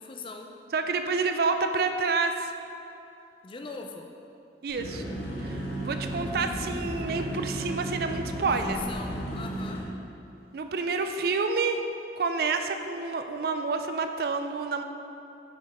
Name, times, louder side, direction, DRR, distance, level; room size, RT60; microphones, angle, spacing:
voice 1, 0.0-0.5 3.4-4.1 8.4-9.8 11.0-11.3, left 4 dB, 30° left, 3 dB, 0.4 m, -42 dB
voice 2, 0.7-2.5 4.6-5.0 5.4-8.8 10.5-11.8 12.2-14.8, right 4 dB, 55° right, 7 dB, 0.4 m, -28 dB
sound 1, 4.7-9.6, right 3 dB, 15° right, 1.1 m, -39 dB
sound 2, 4.8-9.8, equal, 65° left, 1.1 m, -35 dB
6.2 x 5.3 x 4.2 m, 2.8 s
head